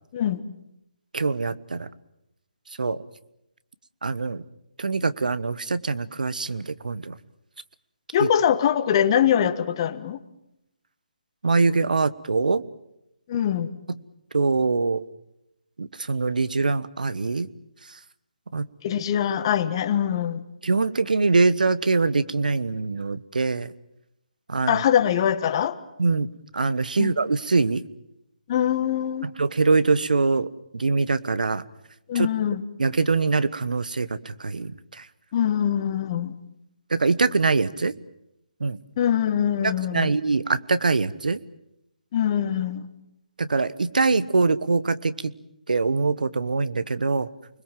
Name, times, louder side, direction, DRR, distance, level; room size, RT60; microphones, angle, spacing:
voice 1, 1.1-1.9 2.8-3.0 4.0-4.4 4.8-7.2 8.2-8.3 11.4-12.6 13.9-14.0 14.3-15.0 15.8-17.5 17.9-18.0 18.5-18.7 20.6-23.7 24.5-24.8 26.0-26.3 26.5-27.8 29.2-31.6 32.1-32.3 32.8-35.1 36.9-37.9 38.6-38.8 39.6-41.4 43.4-45.3 45.7-47.3, right 4 dB, 80° right, 15 dB, 1.2 m, -23 dB
voice 2, 8.1-10.2 13.3-13.7 18.8-20.4 24.7-25.8 27.0-27.1 28.5-29.3 32.1-32.6 35.3-36.3 39.0-40.1 42.1-42.9, left 9 dB, 35° left, 11 dB, 1.4 m, -23 dB
29.5 x 21.5 x 7.6 m, 0.83 s
figure-of-eight pair, 155°, 4 cm